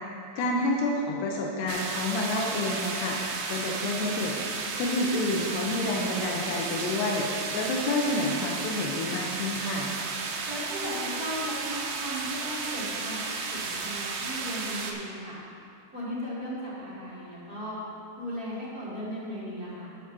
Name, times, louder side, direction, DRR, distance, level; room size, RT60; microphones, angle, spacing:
voice 1, 0.4-3.2 3.5-9.9, left 2 dB, 85° left, -1 dB, 2.9 m, -29 dB
sound 1, 1.7-14.9, right 4 dB, 75° right, 2.0 m, -33 dB
voice 2, 10.5-13.2 13.5-15.4 15.9-17.8 18.2-19.9, equal, 45° right, -8 dB, 1.2 m, -36 dB
12.5 x 4.9 x 6.0 m, 2.6 s
omnidirectional pair, 4.6 m